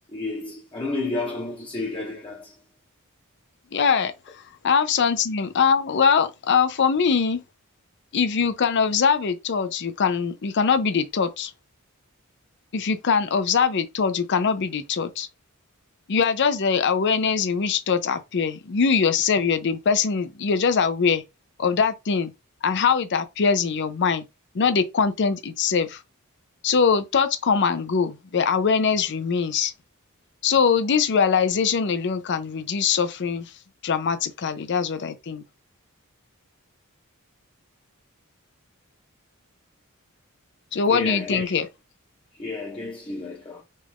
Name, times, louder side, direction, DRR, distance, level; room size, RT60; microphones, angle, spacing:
voice 1, 0.1-2.5 40.9-41.6 42.4-43.6, left 2 dB, 25° left, 0.8 m, -31 dB
voice 2, 3.7-7.4 8.1-11.5 12.7-15.3 16.1-21.2 21.6-22.3 22.6-24.2 24.5-26.0 26.6-29.7 30.4-33.5 33.8-35.4 40.7-41.7, left 6 dB, 55° left, 0.5 m, -22 dB
5.2 x 2.4 x 3.4 m
head